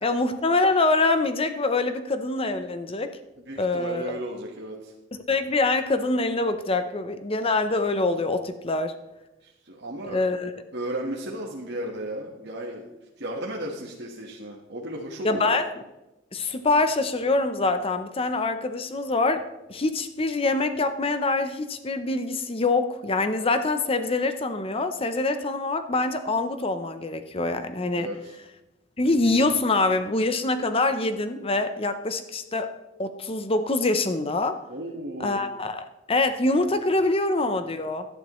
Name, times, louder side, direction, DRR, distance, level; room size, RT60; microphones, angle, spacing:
voice 1, 0.0-3.1 3.6-4.1 5.1-8.9 10.0-10.5 15.2-15.8 16.3-28.1 29.0-32.7 33.0-34.6 35.2-38.1, left 2 dB, 30° left, 9 dB, 0.7 m, -25 dB
voice 2, 3.4-4.9 9.4-10.2 10.7-12.8 13.2-15.5 27.9-28.3 34.7-35.4, right 1 dB, 60° right, -1 dB, 1.4 m, -34 dB
16.5 x 11.5 x 3.1 m, 0.98 s
head